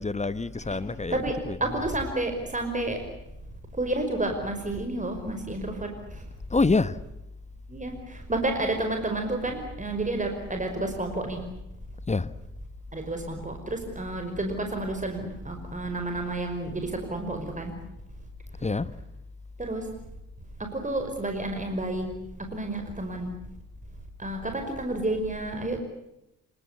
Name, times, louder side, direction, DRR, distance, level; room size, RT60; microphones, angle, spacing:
voice 1, 0.0-1.9 6.5-7.0 12.1-12.3 18.6-18.9, left 3 dB, 15° left, 1.2 m, -27 dB
voice 2, 1.1-3.0 3.7-6.2 7.7-11.4 12.9-17.7 19.6-19.9 20.6-22.1 22.4-23.3 24.2-25.8, right 2 dB, 20° right, 5.4 m, -30 dB
27.0 x 24.5 x 8.3 m
figure-of-eight pair, 40°, 39 cm